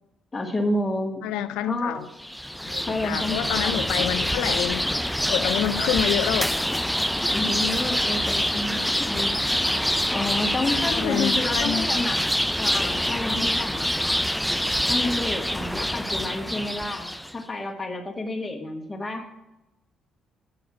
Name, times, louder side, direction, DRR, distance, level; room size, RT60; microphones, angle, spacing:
voice 1, 0.3-1.4 1.7-2.0 2.9-3.9 7.3-9.4 10.1-12.2 12.6-13.9 14.9-17.1 17.3-19.3, left 2 dB, 25° left, 1.8 m, -29 dB
voice 2, 1.2-2.0 2.7-6.5 10.6-12.1, left 11 dB, 80° left, 0.5 m, -28 dB
sound 1, 2.2-17.3, equal, 5° left, 0.5 m, -25 dB
8.8 x 7.0 x 6.1 m
hypercardioid pair, 50°, 0 cm